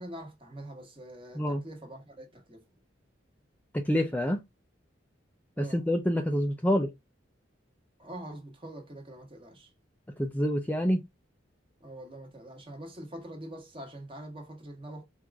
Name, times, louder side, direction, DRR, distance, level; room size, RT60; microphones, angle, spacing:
voice 1, 0.0-2.6 5.6-5.8 8.0-9.7 11.8-15.0, right 1 dB, 30° right, 1.2 m, -44 dB
voice 2, 3.7-4.4 5.6-6.9 10.2-11.0, equal, 10° left, 0.4 m, -27 dB
4.5 x 2.5 x 3.4 m
head